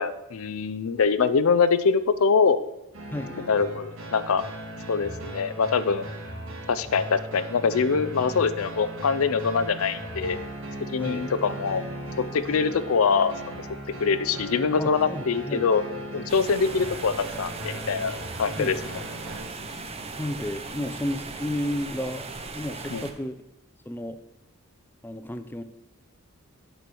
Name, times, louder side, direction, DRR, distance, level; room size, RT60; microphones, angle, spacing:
voice 1, 0.0-2.6 3.5-4.4 4.9-6.1 6.7-10.4 10.9-11.8 12.3-13.6 14.0-15.8 16.1-18.8 22.9-23.0, left 5 dB, 70° left, 14 dB, 0.5 m, -24 dB
sound 1, 2.9-19.4, right 1 dB, 65° right, 1.9 m, -37 dB
voice 2, 11.0-11.3 14.8-15.7 18.6-18.7 20.2-22.3 22.5-23.4 23.9-24.2 25.0-25.6, left 1 dB, 10° left, 10 dB, 0.5 m, -32 dB
sound 2, 16.3-23.1, right 3 dB, 30° right, 0.7 m, -38 dB
8.0 x 4.5 x 6.8 m, 0.89 s
head